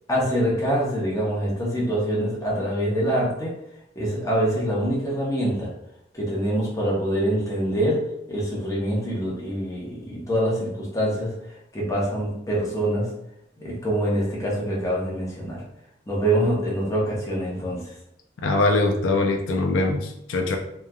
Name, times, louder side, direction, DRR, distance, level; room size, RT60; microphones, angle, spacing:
voice 1, 0.1-3.5 4.0-5.7 6.1-8.0 8.3-11.3 11.7-13.1 13.6-15.6 16.1-17.8, right 1 dB, 15° left, -5 dB, 0.7 m, -25 dB
voice 2, 18.4-20.6, left 2 dB, 90° left, 3 dB, 0.4 m, -22 dB
3.0 x 2.3 x 2.2 m, 0.79 s
head